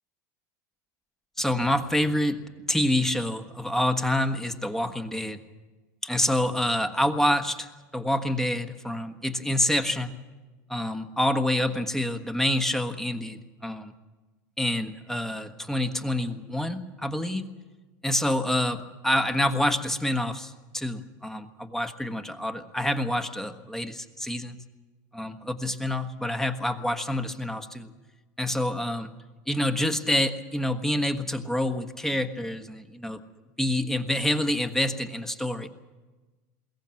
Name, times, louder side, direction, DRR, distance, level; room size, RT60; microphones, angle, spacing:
voice 1, 1.4-2.4 2.7-5.4 6.0-10.1 10.7-13.9 14.6-17.4 18.0-24.6 25.1-27.9 28.4-29.1 29.5-33.2 33.6-35.7, left 1 dB, 5° left, 8 dB, 1.4 m, -27 dB
21.5 x 18.0 x 7.7 m, 1.2 s
supercardioid pair, 115°, 9 cm